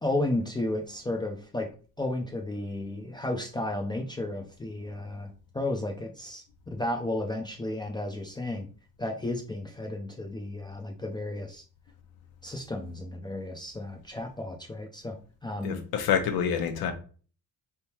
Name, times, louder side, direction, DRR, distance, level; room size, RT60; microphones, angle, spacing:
voice 1, 0.0-6.4 6.7-8.7 9.0-11.6 12.4-15.8, left 1 dB, 10° left, 0.4 m, -33 dB
voice 2, 15.6-16.9, left 8 dB, 75° left, 0.9 m, -27 dB
4.4 x 3.5 x 2.8 m
cardioid pair, 165°, 37 cm